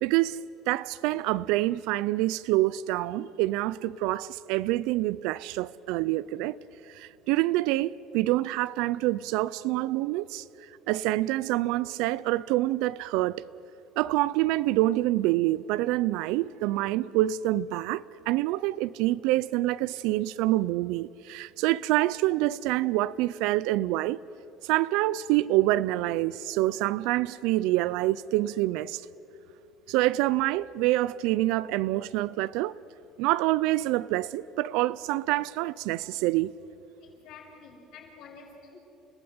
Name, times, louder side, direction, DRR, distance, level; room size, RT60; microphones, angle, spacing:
voice 1, 0.0-6.6 6.9-10.4 10.9-13.4 14.0-24.2 24.6-29.0 29.9-32.8 33.2-36.5, right 16 dB, 85° right, 0.4 m, -26 dB
voice 2, 37.0-38.8, left 5 dB, 70° left, 6.7 m, -49 dB
29.5 x 15.5 x 8.8 m
cardioid pair, 125°, 0 cm